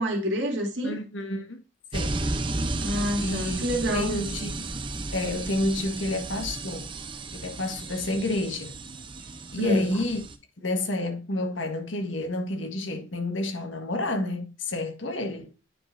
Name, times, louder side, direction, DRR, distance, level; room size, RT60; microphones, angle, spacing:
voice 1, 0.0-1.0 2.8-4.1 9.6-9.9, equal, 70° right, 2.5 m, -27 dB
voice 2, 0.8-1.6 1.9-2.2 3.2-3.7 3.9-4.5 5.1-6.9 7.3-8.7 9.5-10.2 10.6-15.5, left 2 dB, 80° left, 1.6 m, -29 dB
sound 1, 1.9-10.3, right 2 dB, 25° right, 0.7 m, -33 dB
9.6 x 5.4 x 2.6 m
head